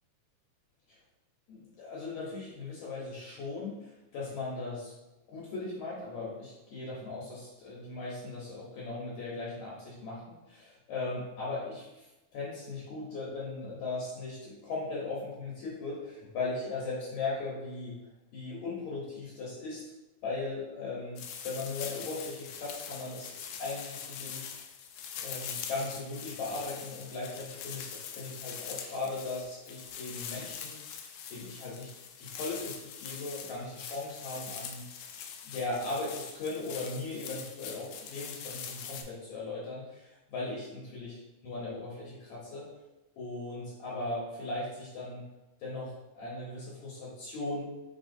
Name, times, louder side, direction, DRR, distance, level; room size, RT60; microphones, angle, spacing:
voice 1, 1.5-4.9 5.3-18.0 18.3-19.8 20.2-21.2 21.4-23.3 23.6-24.7 25.2-30.8 31.3-31.9 32.2-34.8 35.4-42.7 43.2-45.2 45.6-47.7, left 3 dB, 70° left, -5 dB, 2.0 m, -38 dB
sound 1, 21.2-39.0, left 7 dB, 85° left, 1.6 m, -43 dB
4.3 x 4.2 x 2.6 m, 1.0 s
omnidirectional pair, 3.7 m